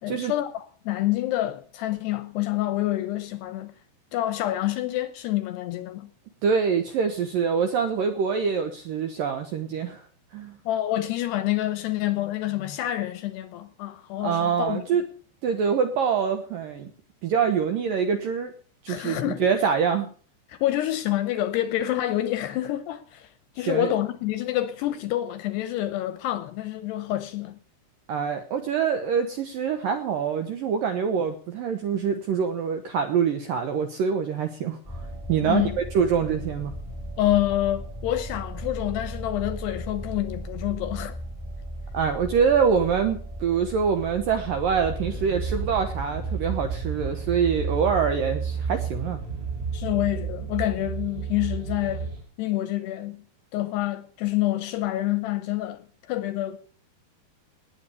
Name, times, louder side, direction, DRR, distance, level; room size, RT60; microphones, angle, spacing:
voice 1, 0.0-3.7 4.1-6.1 10.7-14.9 18.9-19.5 20.5-23.3 23.6-27.6 35.4-35.8 37.2-41.2 49.7-52.1 52.4-53.2 53.5-56.6, left 14 dB, 75° left, 2.6 m, -27 dB
voice 2, 6.4-10.0 10.3-10.6 14.2-15.0 15.4-16.9 17.2-18.5 18.8-20.1 23.6-23.9 28.1-35.0 35.3-35.6 35.9-36.7 41.9-49.2, right 6 dB, 70° right, 2.1 m, -25 dB
sound 1, 34.8-48.2, equal, 5° right, 1.9 m, -37 dB
sound 2, 44.8-52.2, right 5 dB, 90° right, 7.6 m, -31 dB
19.0 x 8.7 x 6.9 m
omnidirectional pair, 5.5 m